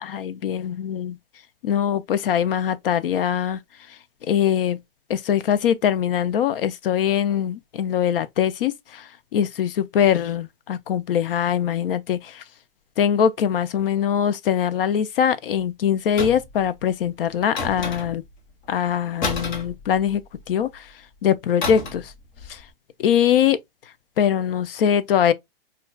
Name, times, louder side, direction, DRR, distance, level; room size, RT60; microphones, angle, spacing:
voice 1, 0.0-1.1 1.6-3.6 4.3-4.8 5.1-9.0 9.3-12.4 13.0-18.2 18.7-20.2 20.5-20.8 21.2-22.1 22.5-22.6 23.0-23.6 24.2-25.3, left 9 dB, 65° left, 0.5 m, -22 dB
sound 1, 16.2-16.6 17.6-18.3 19.2-20.4 21.6-22.1 22.4-22.6, left 3 dB, 50° left, 1.3 m, -30 dB
5.8 x 2.3 x 2.3 m
hypercardioid pair, 145°, 30 cm